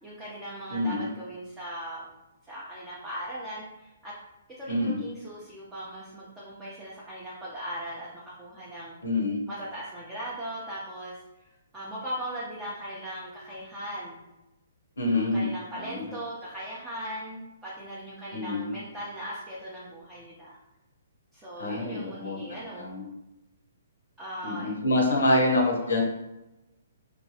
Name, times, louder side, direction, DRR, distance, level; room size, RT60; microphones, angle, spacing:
voice 1, 0.0-2.1 2.5-4.1 4.6-8.9 9.5-11.2 11.7-14.2 15.0-20.6 21.3-22.9 24.2-26.0, equal, 10° right, -8 dB, 0.6 m, -39 dB
voice 2, 0.7-1.1 4.7-5.0 9.0-9.4 15.0-15.5 15.8-16.1 18.3-18.8 21.6-23.0 24.4-26.0, left 2 dB, 80° left, 1 dB, 0.7 m, -26 dB
3.0 x 2.2 x 2.8 m, 0.96 s
hypercardioid pair, 140°, 0 cm